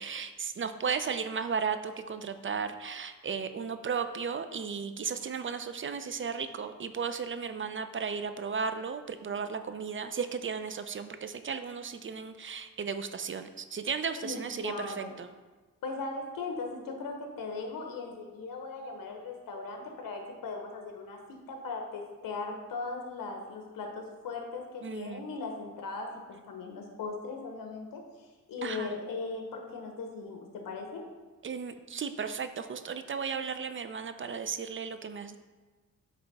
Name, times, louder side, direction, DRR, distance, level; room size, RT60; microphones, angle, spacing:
voice 1, 0.0-15.3 24.8-25.2 28.6-28.9 31.4-35.4, right 6 dB, 40° right, 9 dB, 0.5 m, -35 dB
voice 2, 14.2-15.1 15.8-26.1 26.5-31.0, left 3 dB, 85° left, 2 dB, 0.9 m, -38 dB
8.7 x 3.4 x 4.0 m, 1.3 s
cardioid pair, 85°, 33 cm